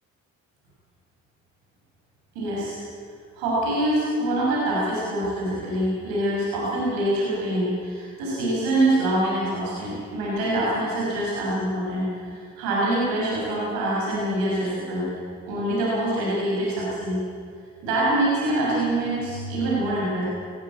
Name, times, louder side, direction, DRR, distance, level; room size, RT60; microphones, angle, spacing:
voice 1, 2.3-2.8 3.4-15.1 15.5-17.2 17.8-20.2, right 1 dB, 80° right, -5 dB, 6.5 m, -25 dB
18.5 x 16.0 x 8.7 m, 2.2 s
hypercardioid pair, 55°, 36 cm